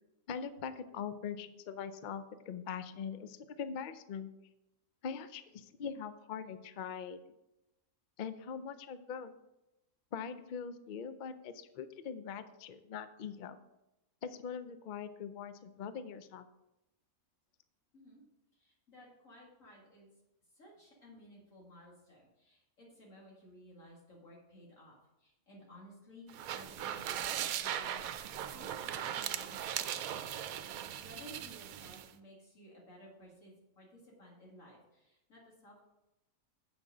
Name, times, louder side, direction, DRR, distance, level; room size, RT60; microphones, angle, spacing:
voice 1, 0.3-4.3 5.0-7.2 8.2-9.3 10.1-13.6 14.2-16.5, left 7 dB, 80° left, 11 dB, 0.4 m, -42 dB
voice 2, 18.5-20.1 20.5-29.9 30.9-35.8, equal, 60° left, -4 dB, 2.3 m, -56 dB
sound 1, 26.3-32.1, right 10 dB, 75° right, 1.0 m, -39 dB
7.9 x 6.2 x 5.0 m, 0.92 s
omnidirectional pair, 1.5 m